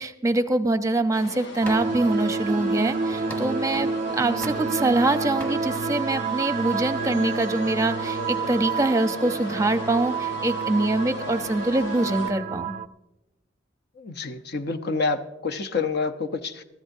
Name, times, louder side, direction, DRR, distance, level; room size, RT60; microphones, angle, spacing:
voice 1, 0.0-12.8, right 2 dB, 15° right, 9 dB, 0.7 m, -24 dB
sound 1, 1.1-12.3, left 1 dB, 80° left, 1.2 m, -36 dB
sound 2, 1.6-2.1 2.5-4.0 4.4-5.1 5.4-5.6, equal, 10° left, 1.7 m, -40 dB
sound 3, 1.6-12.9, right 5 dB, 40° right, 0.3 m, -29 dB
voice 2, 14.0-16.6, left 4 dB, 55° left, 9 dB, 0.9 m, -28 dB
23.0 x 14.0 x 2.7 m, 0.96 s
head